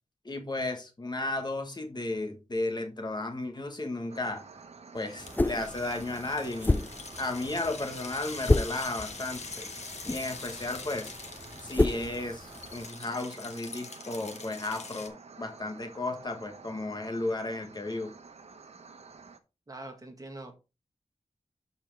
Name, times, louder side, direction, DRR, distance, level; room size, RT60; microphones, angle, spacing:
voice 1, 0.2-4.4 4.9-6.9 7.2-9.7 10.1-11.1 11.6-18.1, left 2 dB, 40° left, 1.4 m, -34 dB
sound 1, 4.1-19.4, right 4 dB, 65° right, 1.1 m, -50 dB
sound 2, 5.0-15.1, left 4 dB, 70° left, 1.5 m, -44 dB
sound 3, 5.2-12.9, left 2 dB, 15° left, 0.4 m, -31 dB
voice 2, 19.7-20.5, right 2 dB, 30° right, 1.9 m, -43 dB
12.0 x 4.5 x 3.4 m
wide cardioid pair, 100°, 12 cm